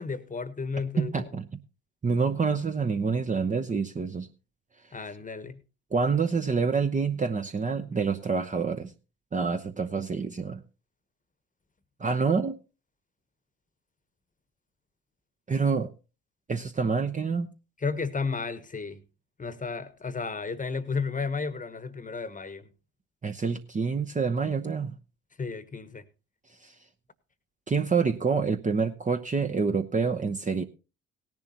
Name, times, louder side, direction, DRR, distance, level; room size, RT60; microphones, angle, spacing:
voice 1, 0.0-1.3 4.9-5.6 17.8-19.0 19.4-22.7 25.4-26.0, left 4 dB, 20° left, 15 dB, 1.2 m, -33 dB
voice 2, 1.0-1.4 2.0-4.3 5.9-8.9 9.3-10.6 12.0-12.6 15.5-15.9 16.5-17.5 23.2-24.9 26.6-26.7 27.7-30.6, right 5 dB, 20° right, 6 dB, 0.8 m, -27 dB
18.0 x 10.5 x 2.9 m, 0.32 s
figure-of-eight pair, 55°, 38 cm